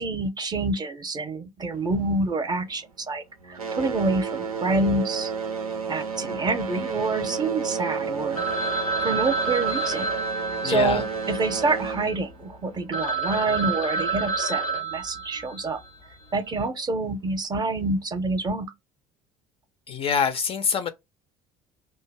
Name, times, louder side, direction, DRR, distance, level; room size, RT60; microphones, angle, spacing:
voice 1, 0.0-5.3 5.9-8.4 9.0-10.1 10.6-15.8 16.3-18.7, right 3 dB, 25° right, 0.5 m, -27 dB
sound 1, 1.7-3.1 3.4-13.7 14.6-14.7 15.3-15.4 16.1-16.2, right 5 dB, 85° right, 0.5 m, -32 dB
Telephone, 8.4-12.1 12.6-12.7 12.9-15.8, right 4 dB, 90° left, 0.6 m, -29 dB
voice 2, 10.6-11.0 19.9-20.9, left 6 dB, 30° left, 0.4 m, -25 dB
2.5 x 2.2 x 3.2 m
figure-of-eight pair, 60°, 18 cm